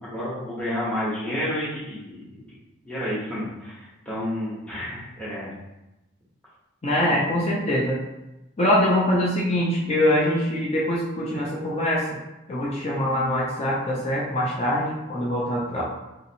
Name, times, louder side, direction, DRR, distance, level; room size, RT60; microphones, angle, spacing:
voice 1, 0.0-2.4 2.8-5.5 7.0-7.1, left 1 dB, 5° left, -10 dB, 1.0 m, -30 dB
voice 2, 6.8-8.0 8.6-12.0 12.5-15.8, left 1 dB, 30° left, -5 dB, 0.6 m, -23 dB
5.0 x 2.9 x 2.8 m, 0.96 s
head